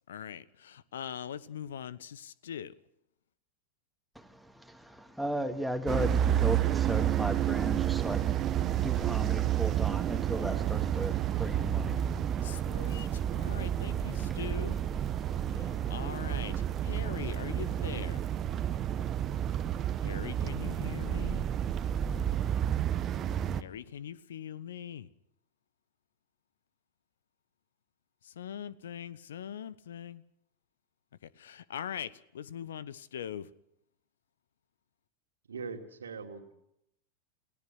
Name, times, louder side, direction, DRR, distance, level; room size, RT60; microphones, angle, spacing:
voice 1, 0.1-2.7 12.4-14.8 15.6-18.3 20.0-21.5 23.6-25.1 28.2-30.2 31.4-33.5, left 9 dB, 60° left, 1.0 m, -41 dB
voice 2, 4.2-14.4 15.1-15.9, right 1 dB, ahead, 2.3 m, -37 dB
sound 1, 5.9-23.6, right 10 dB, 30° right, 1.2 m, -30 dB
voice 3, 35.5-36.6, right 5 dB, 70° right, 2.8 m, -41 dB
29.5 x 18.0 x 6.3 m
figure-of-eight pair, 90°, 0 cm